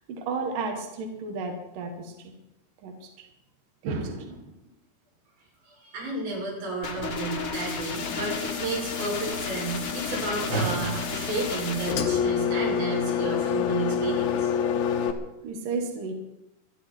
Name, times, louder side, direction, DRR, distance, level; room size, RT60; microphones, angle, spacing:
voice 1, 0.0-2.1 2.8-3.1 3.8-4.5 15.4-16.1, right 4 dB, 60° right, 2 dB, 3.0 m, -32 dB
voice 2, 5.7-14.5, right 3 dB, 80° right, -4 dB, 9.4 m, -31 dB
sound 1, 6.8-12.0, left 4 dB, 50° left, 1.8 m, -34 dB
Engine, 8.0-15.1, left 8 dB, 70° left, 2.6 m, -28 dB
25.5 x 10.5 x 4.6 m, 0.92 s
omnidirectional pair, 5.1 m